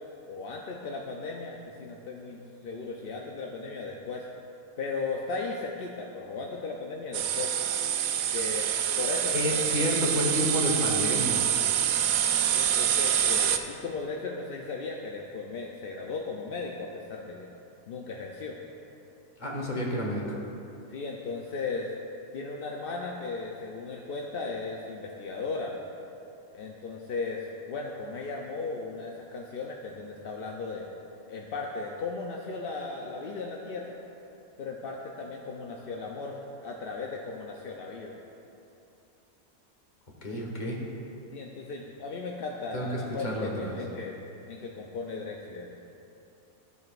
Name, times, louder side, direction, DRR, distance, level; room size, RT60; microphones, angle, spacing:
voice 1, 0.3-4.3 4.8-7.5 8.3-9.6 12.5-17.5 17.9-18.6 20.9-21.9 22.3-25.8 26.5-30.9 31.3-34.0 34.6-38.2 41.3-44.2 44.5-45.7, left 4 dB, 55° left, -1 dB, 0.6 m, -36 dB
sound 1, 7.1-13.6, right 9 dB, 80° right, 1.0 m, -26 dB
voice 2, 9.3-11.5 19.4-20.4 40.2-40.8 42.7-43.7, left 1 dB, 30° left, -2 dB, 1.4 m, -30 dB
14.0 x 7.7 x 2.5 m, 2.7 s
omnidirectional pair, 1.5 m